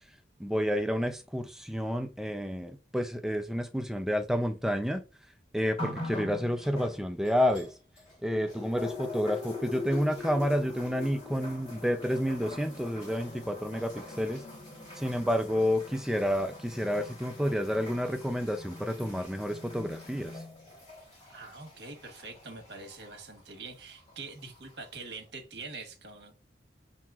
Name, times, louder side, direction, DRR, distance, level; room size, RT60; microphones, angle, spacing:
voice 1, 0.4-5.0 5.5-7.7 8.2-14.4 15.0-20.3, equal, 5° right, 0.4 m, -30 dB
sound 1, 5.8-8.1 8.5-23.2 24.1-24.2, left 2 dB, 30° left, 1.8 m, -43 dB
voice 2, 21.3-26.4, right 3 dB, 60° right, 1.2 m, -44 dB
7.3 x 2.8 x 2.4 m
head